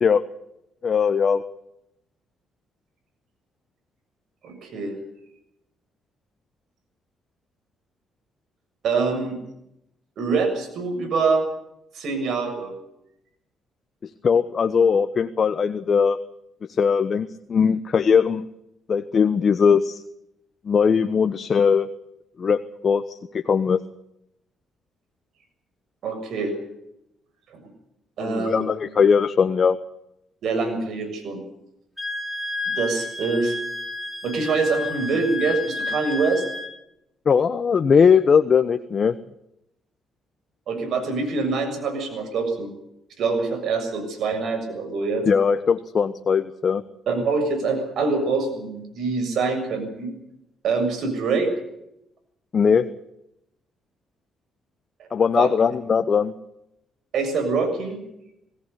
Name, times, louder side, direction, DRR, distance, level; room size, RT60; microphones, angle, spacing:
voice 1, 0.8-1.4 14.2-16.2 16.8-18.5 18.9-20.0 20.7-21.9 22.4-23.0 23.3-23.8 28.2-29.8 37.3-39.2 45.3-46.8 52.5-52.9 55.1-56.3, left 6 dB, 45° left, 10 dB, 1.1 m, -19 dB
voice 2, 4.4-4.9 8.8-9.4 10.2-11.5 11.9-12.7 26.0-26.6 27.5-27.6 28.2-28.7 30.4-31.4 32.7-33.5 34.2-36.4 40.7-42.7 43.2-45.3 47.1-50.1 50.6-51.5 55.0-55.1 55.4-55.5 57.1-58.0, right 4 dB, 70° right, 6 dB, 7.0 m, -25 dB
Wind instrument woodwind instrument, 32.0-36.7, left 2 dB, 10° left, 3.0 m, -31 dB
21.0 x 17.5 x 8.3 m, 0.81 s
cardioid pair, 90°, 0 cm